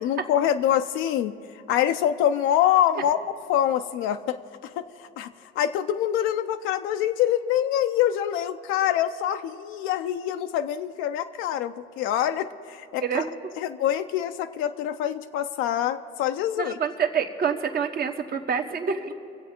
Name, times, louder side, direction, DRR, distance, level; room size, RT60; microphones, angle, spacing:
voice 1, 0.0-3.2 3.5-13.2 13.6-16.8, left 11 dB, 80° left, 8 dB, 0.5 m, -25 dB
voice 2, 16.6-19.1, right 6 dB, 50° right, 6 dB, 1.1 m, -27 dB
23.5 x 8.0 x 4.3 m, 2.8 s
cardioid pair, 95°, 21 cm